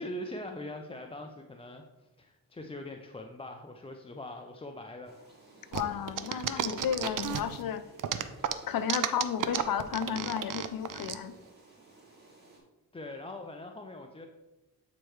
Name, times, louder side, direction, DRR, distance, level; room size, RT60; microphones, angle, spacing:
voice 1, 0.0-5.2 12.9-14.3, left 1 dB, 15° left, 3 dB, 0.4 m, -42 dB
sound 1, 5.0-12.6, right 2 dB, 25° right, 2.2 m, -57 dB
voice 2, 5.7-7.8 8.7-11.3, left 8 dB, 65° left, 11 dB, 0.5 m, -33 dB
sound 2, 5.7-7.6 8.0-11.2, right 9 dB, 55° right, 0.5 m, -32 dB
8.3 x 4.4 x 3.1 m, 1.1 s
cardioid pair, 85°, 37 cm